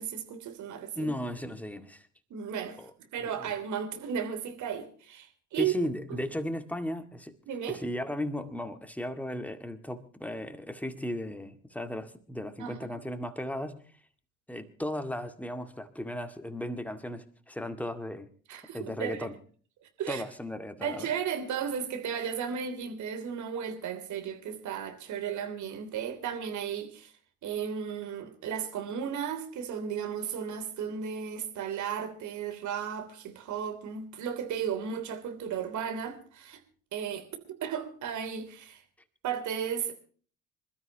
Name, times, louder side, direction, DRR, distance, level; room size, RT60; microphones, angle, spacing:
voice 1, 0.0-1.1 2.3-2.8 3.1-5.7 6.1-6.2 7.5-7.8 12.6-13.0 18.5-19.3 20.0-20.2 20.8-27.1 27.4-36.6 36.9-38.8 39.2-39.9, right 8 dB, 50° right, 3.3 m, -34 dB
voice 2, 1.0-2.1 2.8-2.9 3.2-3.5 5.6-7.3 7.7-13.9 14.5-18.3 18.7-19.3 20.1-21.1, left 1 dB, 5° left, 2.1 m, -36 dB
26.5 x 13.0 x 2.9 m
figure-of-eight pair, 60°, 38 cm